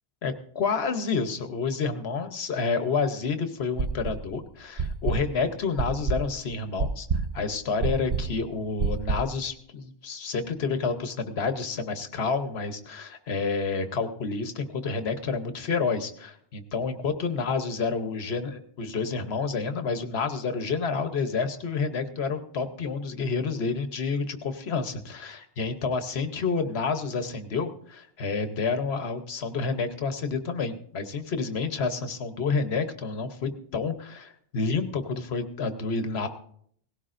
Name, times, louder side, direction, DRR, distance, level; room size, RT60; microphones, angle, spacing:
voice 1, 0.2-7.1 7.3-36.3, left 4 dB, 85° left, 8 dB, 1.2 m, -29 dB
sound 1, 3.8-4.4 4.8-9.4, right 4 dB, 50° right, 0.7 m, -28 dB
18.0 x 16.5 x 2.6 m, 0.65 s
omnidirectional pair, 1.0 m